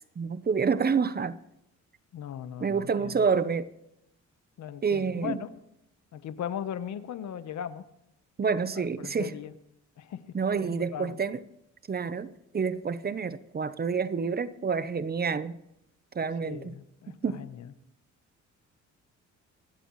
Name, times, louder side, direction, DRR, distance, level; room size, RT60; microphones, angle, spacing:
voice 1, 0.2-1.4 2.6-3.7 4.8-5.4 8.4-9.3 10.3-11.4 11.9-15.6 16.1-16.7 17.2-17.4, right 5 dB, 30° right, 0.9 m, -28 dB
voice 2, 2.1-3.1 4.6-5.5 6.1-7.9 8.8-9.5 10.0-11.2 16.4-17.7, left 9 dB, 65° left, 1.1 m, -38 dB
26.5 x 12.0 x 3.2 m
cardioid pair, 90°, 30 cm